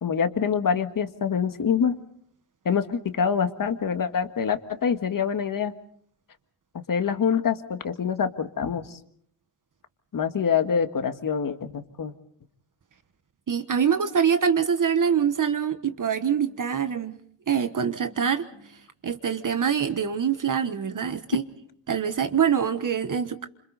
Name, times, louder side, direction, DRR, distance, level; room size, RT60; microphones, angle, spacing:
voice 1, 0.0-2.0 2.7-5.7 6.7-9.0 10.1-12.1, left 7 dB, 40° left, 8 dB, 1.7 m, -25 dB
voice 2, 13.5-17.2 17.5-18.4 19.0-21.4 21.9-23.5, right 7 dB, 40° right, 9 dB, 1.3 m, -24 dB
29.5 x 27.0 x 4.1 m, 0.63 s
cardioid pair, 120°, 50 cm